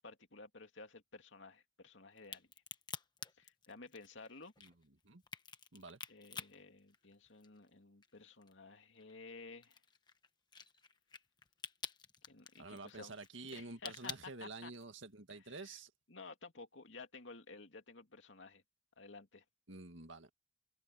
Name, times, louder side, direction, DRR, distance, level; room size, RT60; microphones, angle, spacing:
voice 1, 0.0-2.5 3.4-4.5 6.1-9.8 12.3-13.1 13.5-14.7 15.3-15.8 16.1-18.6 19.0-19.4, left 3 dB, 70° left, 2.5 m, -54 dB
Crack, 2.2-7.7 8.0-15.0, left 5 dB, 20° left, 1.3 m, -50 dB
voice 2, 12.6-15.9 19.7-20.3, right 3 dB, 70° right, 2.0 m, -49 dB
head